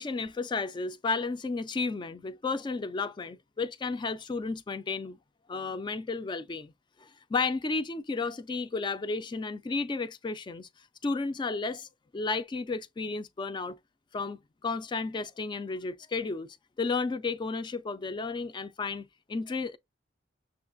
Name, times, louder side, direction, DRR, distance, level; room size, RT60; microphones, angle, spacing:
voice 1, 0.0-5.2 5.5-6.7 7.0-10.7 11.0-13.8 14.1-19.8, left 4 dB, 25° left, 0.3 m, -33 dB
6.5 x 2.3 x 2.5 m
head